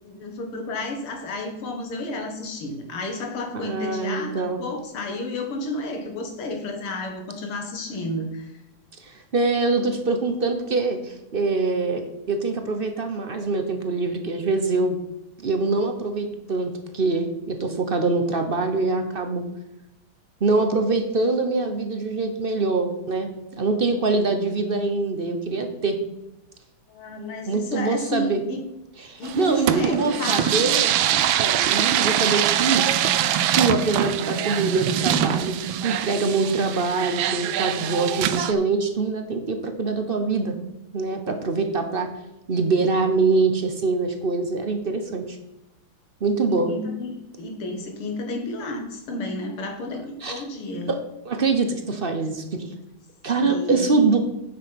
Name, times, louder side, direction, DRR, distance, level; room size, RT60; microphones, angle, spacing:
voice 1, 0.0-8.6 26.9-28.6 29.2-30.7 46.5-50.9 53.4-54.1, left 2 dB, 85° left, 4 dB, 2.6 m, -32 dB
voice 2, 3.5-4.6 9.0-15.0 15.4-19.4 20.4-23.3 23.6-26.0 27.5-28.4 29.0-30.9 31.4-32.9 33.5-35.5 35.8-40.6 40.9-42.1 42.5-45.4 46.2-46.7 50.2-50.4 50.9-52.6 53.2-54.2, right 3 dB, 40° right, 6 dB, 0.8 m, -24 dB
sound 1, 29.2-38.5, right 10 dB, 75° right, 1.4 m, -23 dB
9.4 x 7.4 x 5.9 m, 0.94 s
omnidirectional pair, 2.3 m